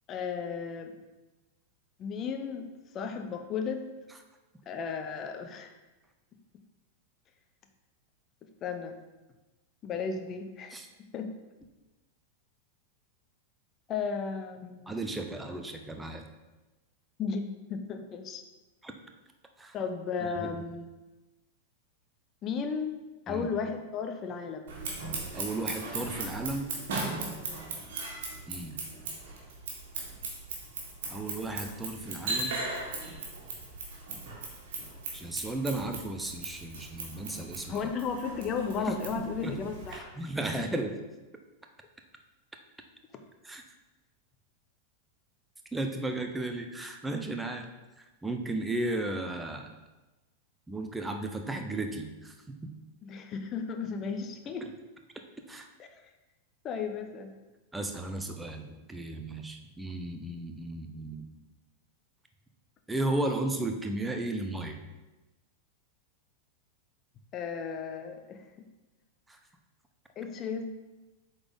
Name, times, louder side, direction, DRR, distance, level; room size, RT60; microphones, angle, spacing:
voice 1, 0.1-0.9 2.0-2.7 2.9-3.8 4.7-5.7 8.6-9.0 9.8-10.8 11.1-11.3 13.9-14.9 17.2-18.4 19.7-20.9 22.4-22.9 23.3-24.6 27.5-27.7 37.7-40.1 53.0-54.7 55.9-56.0 56.6-57.3 67.3-68.5 70.2-70.7, left 5 dB, 30° left, 6 dB, 0.6 m, -34 dB
voice 2, 14.9-16.2 18.8-18.9 19.6-19.7 20.2-20.6 23.3-23.5 25.3-26.7 28.5-28.8 31.1-32.6 35.1-37.9 38.9-39.6 39.9-41.0 43.4-43.6 45.7-47.6 48.0-49.8 50.7-52.7 54.6-54.7 55.5-55.7 57.7-61.3 62.9-64.8 69.3-69.4, right 2 dB, 10° right, 4 dB, 0.7 m, -35 dB
Scissors, 24.7-40.0, right 3 dB, 55° right, 1.7 m, -38 dB
7.8 x 4.0 x 3.9 m, 1.1 s
figure-of-eight pair, 90°, 0 cm